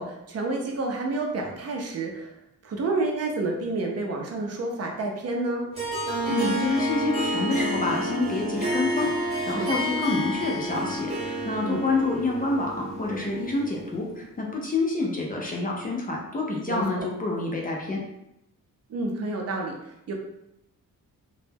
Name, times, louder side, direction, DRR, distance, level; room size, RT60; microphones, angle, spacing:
voice 1, 0.0-2.3 2.6-5.7 9.5-9.8 11.6-11.8 16.7-17.1 18.9-20.1, right 2 dB, 45° right, 1 dB, 0.5 m, -29 dB
Harp, 5.7-14.2, equal, 20° right, 0.9 m, -29 dB
voice 2, 6.3-18.0, left 3 dB, 25° left, -2 dB, 0.4 m, -28 dB
2.2 x 2.0 x 3.2 m, 0.82 s
wide cardioid pair, 150°, 34 cm